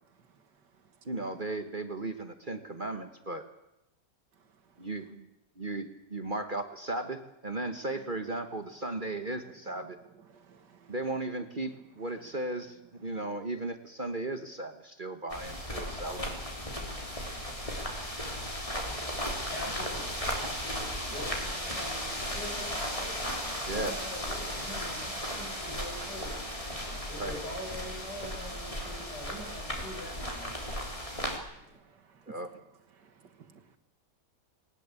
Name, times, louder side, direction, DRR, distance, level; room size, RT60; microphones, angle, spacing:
voice 1, 1.0-3.4 4.8-5.3 5.6-10.0 10.9-16.4 23.7-24.0 27.2-27.4 32.3-32.5, right 2 dB, 30° right, 1.4 m, -36 dB
voice 2, 10.3-10.9 17.6-18.2 31.7-32.4 33.0-33.6, right 6 dB, 75° right, 2.3 m, -56 dB
sound 1, 15.3-31.4, equal, 20° left, 3.6 m, -36 dB
voice 3, 19.0-23.2 23.6-26.3 27.1-30.5 31.6-31.7, equal, 75° left, 8.6 m, -44 dB
21.0 x 19.0 x 8.4 m
omnidirectional pair, 1.9 m